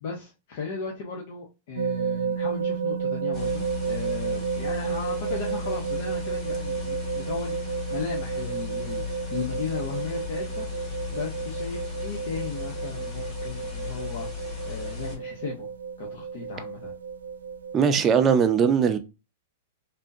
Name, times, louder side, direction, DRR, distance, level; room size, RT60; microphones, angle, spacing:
voice 1, 0.0-10.7 11.1-14.3 14.7-15.7 16.0-16.9, left 5 dB, 60° left, 0.8 m, -36 dB
sound 1, 1.8-17.8, right 6 dB, 80° right, 0.4 m, -32 dB
sound 2, 3.3-15.2, left 7 dB, 35° left, 2.0 m, -36 dB
voice 2, 17.7-19.0, right 6 dB, 25° right, 0.5 m, -20 dB
3.5 x 2.7 x 2.6 m
hypercardioid pair, 110°, 0 cm